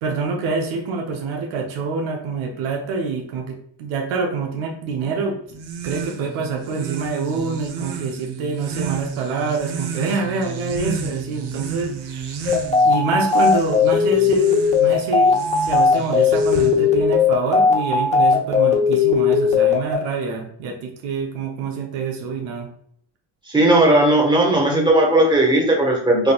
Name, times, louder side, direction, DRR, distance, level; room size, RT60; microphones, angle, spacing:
voice 1, 0.0-5.4 5.8-12.4 12.8-22.7, right 4 dB, 85° right, 1 dB, 0.8 m, -26 dB
sound 1, 5.5-17.0, right 6 dB, 55° right, 0.7 m, -32 dB
sound 2, 12.5-19.9, left 5 dB, 15° left, 0.9 m, -18 dB
voice 2, 23.5-26.3, right 1 dB, 10° right, -1 dB, 1.4 m, -16 dB
4.7 x 2.5 x 2.3 m, 0.64 s
supercardioid pair, 60°, 47 cm